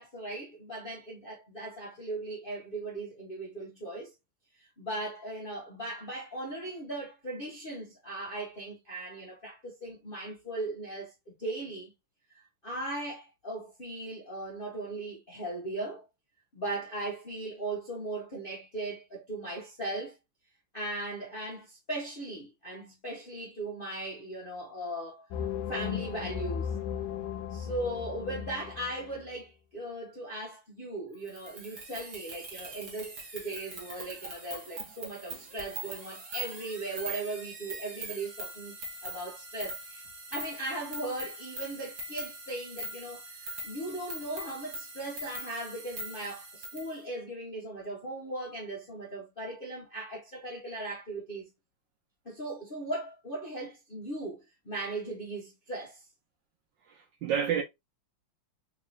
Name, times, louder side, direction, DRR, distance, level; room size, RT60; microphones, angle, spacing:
voice 1, 0.0-4.1 4.6-11.9 12.3-16.0 16.5-20.2 20.7-25.2 25.7-26.8 27.5-38.7 39.0-40.0 40.3-51.5 52.2-56.0, right 2 dB, 50° left, 0.6 m, -38 dB
sound 1, 25.3-29.3, left 8 dB, 75° left, 1.2 m, -36 dB
sound 2, 31.3-46.9, right 2 dB, 50° right, 1.7 m, -42 dB
voice 2, 56.9-57.6, right 8 dB, 75° right, 1.1 m, -29 dB
3.6 x 3.1 x 2.5 m
omnidirectional pair, 2.4 m